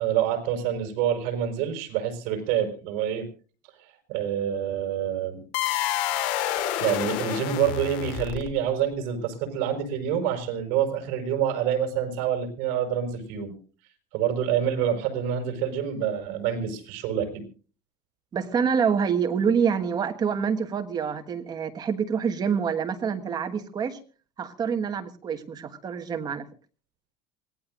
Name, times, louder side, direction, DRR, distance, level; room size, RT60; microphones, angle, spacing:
voice 1, 0.0-3.3 3.8-5.4 6.3-13.5 14.1-17.4, right 9 dB, 65° right, 5 dB, 5.1 m, -27 dB
sound 1, 5.5-8.7, left 11 dB, 80° left, 2.7 m, -28 dB
sound 2, 6.6-8.5, left 3 dB, 20° left, 2.7 m, -46 dB
voice 2, 18.3-24.0 24.4-26.4, right 6 dB, 25° right, 5 dB, 1.5 m, -26 dB
25.0 x 18.0 x 2.5 m, 0.38 s
cardioid pair, 175°, 17 cm